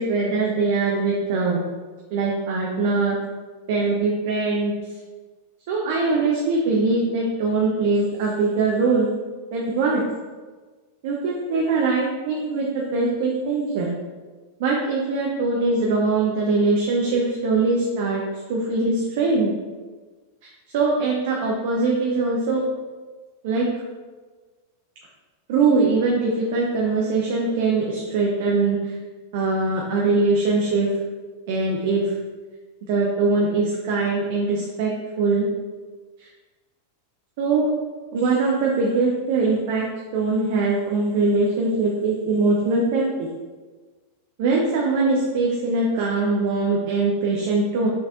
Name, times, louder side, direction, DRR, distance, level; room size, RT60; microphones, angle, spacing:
voice 1, 0.0-1.6 2.1-3.1 3.7-4.7 5.7-9.1 9.5-10.0 11.0-13.9 14.6-18.2 18.5-19.5 20.7-22.6 23.4-23.6 25.5-28.9 29.3-30.9 31.5-32.1 32.9-34.9 35.2-35.5 36.2-36.3 37.4-37.7 38.1-39.8 40.1-43.3 44.4-47.9, right 3 dB, 50° right, -2 dB, 0.6 m, -22 dB
5.6 x 3.3 x 2.6 m, 1.4 s
figure-of-eight pair, 90°, 0 cm